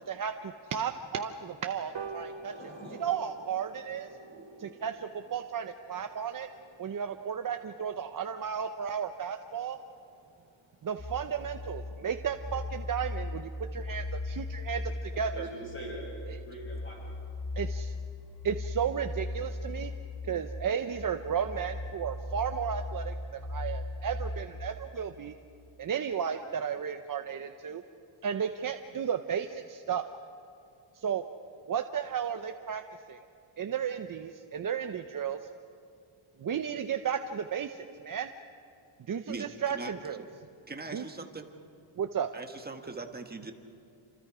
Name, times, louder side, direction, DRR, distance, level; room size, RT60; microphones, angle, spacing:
voice 1, 0.1-2.5 3.0-4.1 4.6-6.5 6.8-9.8 10.8-15.5 17.6-17.9 18.4-19.9 20.2-25.3 25.8-27.8 28.2-30.1 30.9-31.2 31.7-32.8 33.1-33.2 33.6-35.5 36.4-38.3 39.1-40.2 40.9-41.1 42.0-42.3, right 7 dB, 40° right, 7 dB, 0.8 m, -34 dB
sound 1, 1.9-8.7 9.1-9.2 9.5-9.6 9.9-10.0 10.3-10.4 10.7-11.0 11.4-11.5, right 5 dB, 60° right, 2.1 m, -48 dB
voice 2, 2.2-3.2 3.9-4.8 5.1-5.5 6.7-7.1 10.1-10.9 15.1-16.1 16.4-17.1, equal, 25° left, -3 dB, 7.4 m, -46 dB
sound 2, 11.0-24.7, left 2 dB, 45° left, 2.5 m, -38 dB
voice 3, 39.3-39.9 40.7-41.5 42.3-43.5, right 3 dB, 20° right, 4 dB, 1.6 m, -41 dB
28.5 x 26.5 x 5.0 m, 2.6 s
wide cardioid pair, 135°, 50 cm